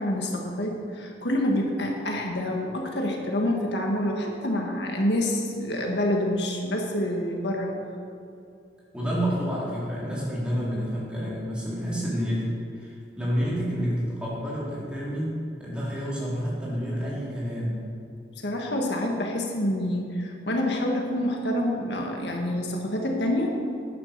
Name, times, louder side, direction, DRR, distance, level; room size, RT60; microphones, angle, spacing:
voice 1, 0.0-7.8 18.4-23.6, left 1 dB, 75° left, 1 dB, 1.6 m, -27 dB
voice 2, 8.9-17.9, equal, 5° right, -8 dB, 3.7 m, -29 dB
11.0 x 9.9 x 6.7 m, 2.5 s
head